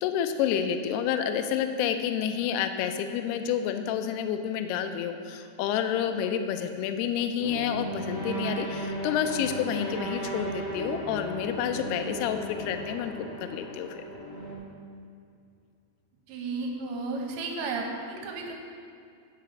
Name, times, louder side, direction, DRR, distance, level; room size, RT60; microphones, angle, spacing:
voice 1, 0.0-13.1 13.4-14.0, left 8 dB, 85° left, 7 dB, 2.3 m, -29 dB
sound 1, 7.4-14.6, right 1 dB, 60° left, 1.5 m, -35 dB
voice 2, 16.3-18.5, right 3 dB, 85° right, 1 dB, 3.1 m, -33 dB
9.1 x 5.8 x 5.5 m, 2.4 s
omnidirectional pair, 5.2 m